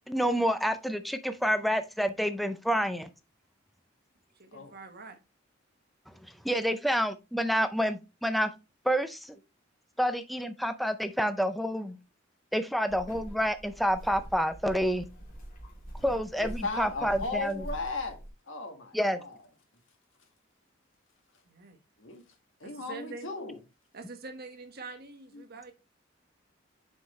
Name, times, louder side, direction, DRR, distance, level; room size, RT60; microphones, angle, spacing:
voice 1, 0.1-3.1 6.4-8.5 8.8-9.4 10.0-12.0 12.5-15.0 16.0-17.6 18.9-19.2, equal, ahead, 0.4 m, -28 dB
voice 2, 4.4-5.2 21.5-21.8 22.6-23.3 23.9-25.7, right 4 dB, 55° right, 1.3 m, -45 dB
sound 1, 12.9-18.3, equal, 45° left, 2.9 m, -44 dB
voice 3, 16.4-18.2 18.5-19.4 22.0-22.2 22.6-23.6 25.3-25.4, left 3 dB, 90° left, 1.8 m, -36 dB
7.1 x 5.6 x 3.1 m
head